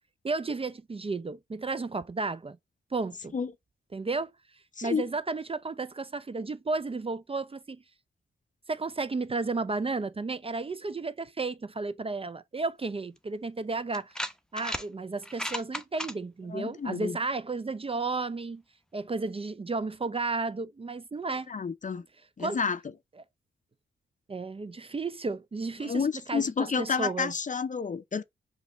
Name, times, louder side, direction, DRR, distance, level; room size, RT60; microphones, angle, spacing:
voice 1, 0.2-2.6 2.9-3.4 3.9-4.3 4.8-7.8 8.7-14.1 14.5-18.6 18.9-21.5 22.4-22.6 24.3-27.3, right 3 dB, 25° right, 0.5 m, -33 dB
sound 1, 13.2-13.3 13.9-14.9 15.2-16.1, equal, 5° left, 0.8 m, -34 dB
voice 2, 16.5-17.2 21.5-22.0 22.4-22.8 25.8-28.2, left 5 dB, 40° left, 0.5 m, -30 dB
5.0 x 2.8 x 3.3 m
supercardioid pair, 40°, 21 cm